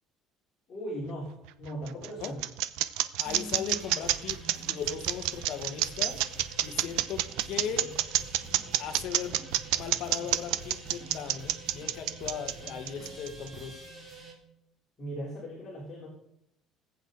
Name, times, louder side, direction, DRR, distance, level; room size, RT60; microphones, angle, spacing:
voice 1, 0.7-2.5 15.0-16.1, right 1 dB, 30° left, -6 dB, 3.9 m, -38 dB
sound 1, 1.4-13.5, right 15 dB, 85° right, 0.7 m, -28 dB
voice 2, 3.2-4.4 4.7-6.2 6.6-7.9 8.8-9.4 9.7-13.8, left 7 dB, 55° left, 5 dB, 1.5 m, -38 dB
sound 2, 3.2-14.3, right 2 dB, 10° right, 3.7 m, -46 dB
20.0 x 8.5 x 4.0 m, 0.78 s
cardioid pair, 165°, 0 cm